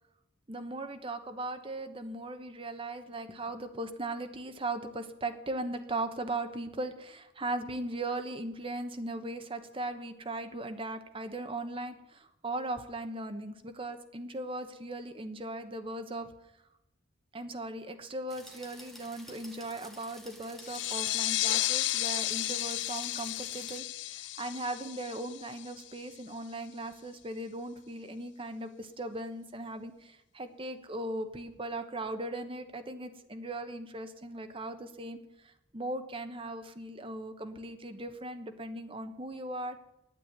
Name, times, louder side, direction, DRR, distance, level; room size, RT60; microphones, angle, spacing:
voice 1, 0.5-16.3 17.3-39.8, right 2 dB, 30° right, 7 dB, 1.1 m, -38 dB
sound 1, 18.3-23.8, equal, ahead, 1.4 m, -51 dB
sound 2, 20.6-26.0, left 16 dB, 65° left, 0.3 m, -33 dB
9.3 x 8.5 x 9.3 m, 0.83 s
head